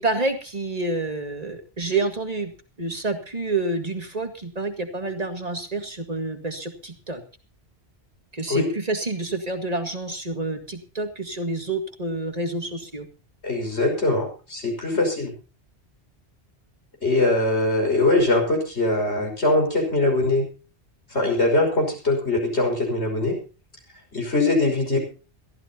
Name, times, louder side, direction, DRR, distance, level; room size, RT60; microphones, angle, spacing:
voice 1, 0.0-2.5 2.8-7.2 8.3-13.1 14.9-15.0, right 2 dB, 35° right, 5 dB, 2.2 m, -28 dB
voice 2, 13.4-15.3 17.0-20.5 21.1-23.4 24.1-25.0, left 2 dB, 75° left, 1 dB, 5.9 m, -22 dB
22.5 x 14.5 x 2.9 m, 0.33 s
omnidirectional pair, 1.1 m